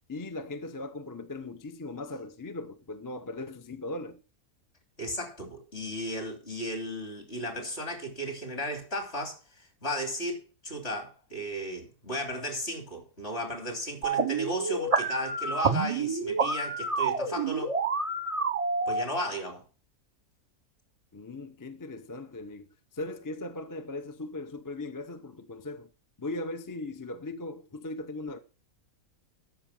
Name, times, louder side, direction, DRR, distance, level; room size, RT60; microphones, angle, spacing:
voice 1, 0.1-4.2 21.1-22.7 22.9-25.9 26.2-28.4, left 2 dB, 25° left, 0.4 m, -38 dB
voice 2, 5.0-10.4 10.6-17.7 18.9-19.6, equal, 45° left, 3.5 m, -35 dB
sound 1, 14.0-19.0, right 4 dB, 30° right, 0.7 m, -28 dB
13.0 x 6.0 x 5.9 m
omnidirectional pair, 1.5 m